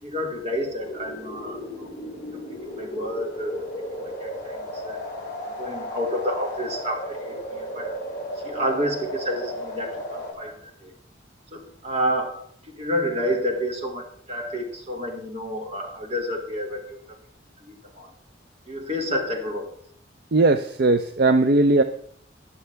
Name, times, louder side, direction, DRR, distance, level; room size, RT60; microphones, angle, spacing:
voice 1, 0.0-1.9 2.7-3.5 4.0-5.0 5.6-8.0 8.4-10.9 11.5-17.0 17.7-18.1 18.7-19.7, equal, 35° right, 1 dB, 2.2 m, -29 dB
sound 1, 0.8-10.3, equal, 20° left, 5.0 m, -34 dB
voice 2, 20.3-21.8, right 2 dB, 55° right, 9 dB, 0.5 m, -18 dB
20.5 x 7.1 x 3.4 m, 0.62 s
head